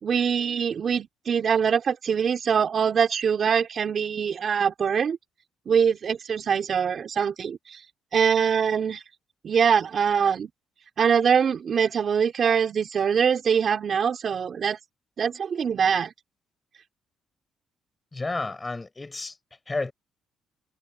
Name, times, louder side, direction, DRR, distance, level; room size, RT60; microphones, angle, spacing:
voice 1, 0.0-5.2 5.7-7.8 8.1-9.0 9.4-10.5 11.0-14.8 15.2-16.1, right 7 dB, 50° right, 4.6 m, -23 dB
voice 2, 18.1-19.4 19.7-19.9, left 3 dB, 20° left, 6.6 m, -31 dB
cardioid pair, 90°, 0 cm